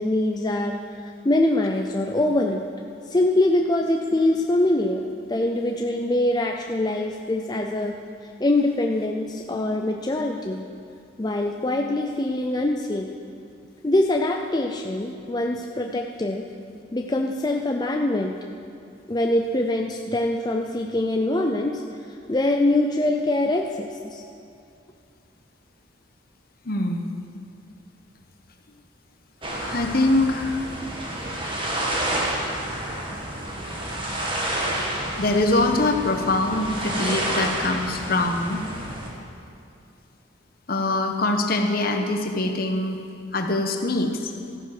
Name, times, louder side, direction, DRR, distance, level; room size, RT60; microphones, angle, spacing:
voice 1, 0.0-2.6 3.1-5.0 5.3-8.0 8.4-10.7 11.2-13.2 13.8-16.4 16.9-18.3 19.1-21.8 22.3-24.2, left 1 dB, 20° left, 2 dB, 0.5 m, -23 dB
voice 2, 26.6-27.1 29.6-30.6 35.2-38.8 40.7-43.0 43.3-44.1, left 2 dB, 50° left, 4 dB, 1.1 m, -23 dB
sound 1, 29.4-39.1, right 1 dB, 25° right, 1.7 m, -29 dB
14.0 x 9.7 x 6.0 m, 2.5 s
head